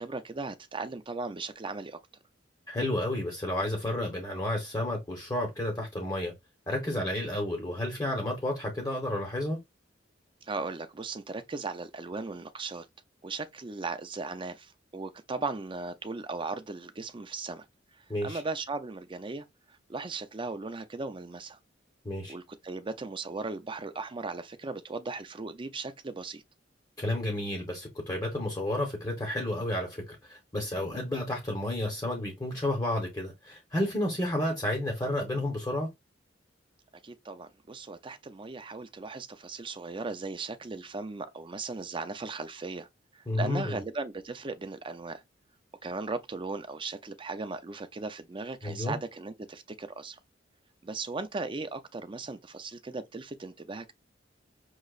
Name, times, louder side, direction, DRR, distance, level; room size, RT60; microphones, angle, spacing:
voice 1, 0.0-2.0 10.4-12.9 13.2-17.7 17.9-21.6 22.3-26.4 37.0-42.9 43.1-45.2 45.8-50.2 50.8-53.9, right 3 dB, 25° right, 0.5 m, -37 dB
voice 2, 2.7-6.3 6.7-9.6 18.1-18.4 22.0-22.4 27.0-35.9 43.3-43.8 48.6-49.0, left 1 dB, 20° left, 1.1 m, -31 dB
6.3 x 2.9 x 2.4 m
head